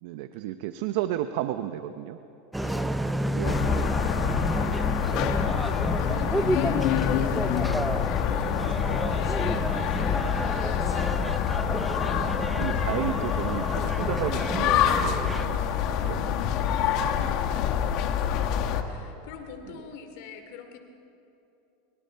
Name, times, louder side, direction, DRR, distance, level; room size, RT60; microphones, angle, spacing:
voice 1, 0.0-2.2 3.3-3.6 4.8-5.1 12.2-16.6 17.0-17.4 19.7-19.8, right 13 dB, 65° right, 10 dB, 0.8 m, -33 dB
voice 2, 2.5-3.8 5.9-7.8 8.2-11.2 17.1-17.9 18.8-20.8, left 6 dB, 65° left, 6 dB, 2.5 m, -43 dB
sound 1, 2.5-15.4, right 1 dB, 5° right, 0.5 m, -31 dB
sound 2, 3.4-18.8, left 9 dB, 50° left, 1.4 m, -26 dB
29.5 x 22.5 x 4.6 m, 2.8 s
supercardioid pair, 125°, 0 cm